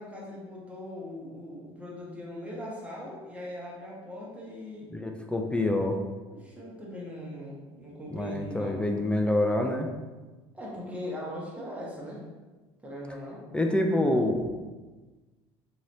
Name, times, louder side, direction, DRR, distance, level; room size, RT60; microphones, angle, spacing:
voice 1, 0.0-4.9 6.3-8.8 10.5-12.2 12.8-13.4, left 1 dB, 10° right, -4 dB, 1.1 m, -40 dB
voice 2, 4.9-6.0 8.1-9.9 13.5-14.5, left 1 dB, 10° left, 3 dB, 0.3 m, -26 dB
3.0 x 2.8 x 2.6 m, 1.2 s
hypercardioid pair, 75°, 14 cm